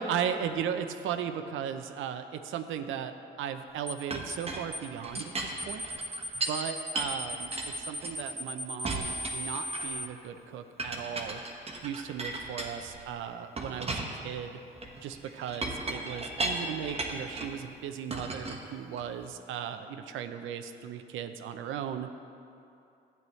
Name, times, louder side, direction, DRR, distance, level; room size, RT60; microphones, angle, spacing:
voice 1, 0.0-3.1 3.4-5.8 6.5-11.4 11.8-14.6 15.0-22.1, right 8 dB, 85° right, 8 dB, 0.6 m, -36 dB
sound 1, 3.9-4.0 4.3-4.5 4.7-4.9 5.2-5.3 5.6-10.1, equal, 10° right, 0.5 m, -37 dB
Chink clink, 4.1-6.6 7.0-8.4 8.8-10.1 10.8-13.1 13.6-17.6 18.1-19.3, right 2 dB, 30° right, 1.2 m, -36 dB
12.0 x 9.2 x 3.2 m, 2.7 s
cardioid pair, 90°, 20 cm